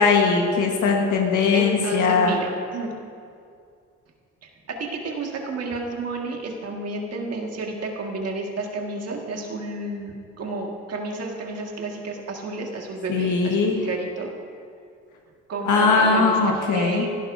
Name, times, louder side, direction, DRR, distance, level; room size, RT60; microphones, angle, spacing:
voice 1, 0.0-2.3 13.1-13.8 15.7-17.0, left 4 dB, 80° left, 1 dB, 1.4 m, -20 dB
voice 2, 1.5-2.9 4.7-14.3 15.5-17.1, right 3 dB, 55° right, 1 dB, 1.9 m, -31 dB
16.0 x 11.5 x 2.7 m, 2.3 s
cardioid pair, 90°, 30 cm